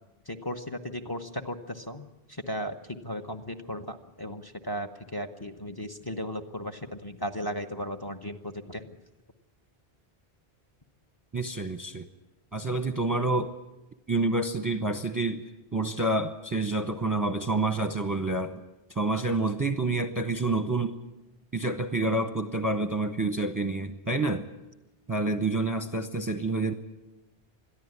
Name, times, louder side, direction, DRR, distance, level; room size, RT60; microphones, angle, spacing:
voice 1, 0.3-2.0 2.5-8.8, equal, 25° left, 9 dB, 1.0 m, -36 dB
voice 2, 11.3-12.1 12.5-13.5 14.1-15.4 15.7-18.6 18.9-21.0 21.5-24.5 25.1-26.7, right 2 dB, 20° right, 9 dB, 0.8 m, -28 dB
21.5 x 13.5 x 9.6 m, 1.0 s
omnidirectional pair, 1.0 m